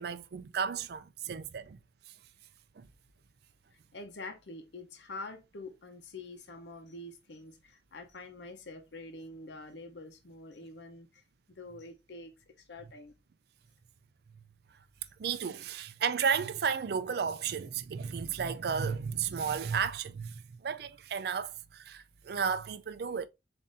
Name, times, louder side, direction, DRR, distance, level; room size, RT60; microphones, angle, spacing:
voice 1, 0.0-1.8 2.8-2.9 15.2-23.3, right 6 dB, 60° right, 0.4 m, -33 dB
voice 2, 3.9-11.2 11.5-13.1, left 2 dB, 75° left, 0.8 m, -46 dB
7.1 x 2.6 x 2.6 m
head